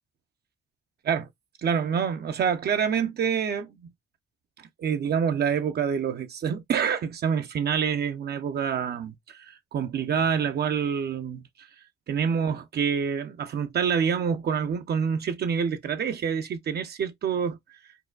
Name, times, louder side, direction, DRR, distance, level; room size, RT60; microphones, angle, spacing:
voice 1, 1.6-3.9 4.6-11.7 12.1-17.6, right 7 dB, 55° right, 0.6 m, -27 dB
4.6 x 2.2 x 2.3 m
cardioid pair, 90°, 20 cm